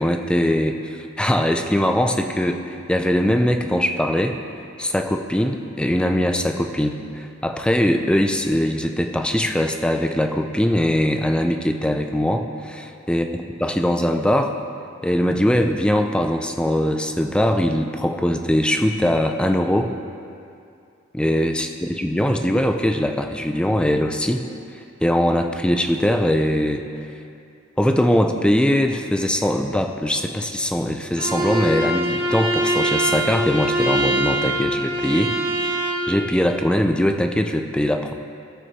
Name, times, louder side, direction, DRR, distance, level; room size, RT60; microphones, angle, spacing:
voice 1, 0.0-4.4 4.8-14.5 15.0-19.9 21.1-24.4 25.0-26.8 27.8-35.3 36.1-38.1, equal, 5° left, 5 dB, 0.4 m, -21 dB
Bowed string instrument, 31.2-36.1, right 1 dB, 70° right, 1.8 m, -23 dB
16.5 x 6.1 x 3.1 m, 2.5 s
head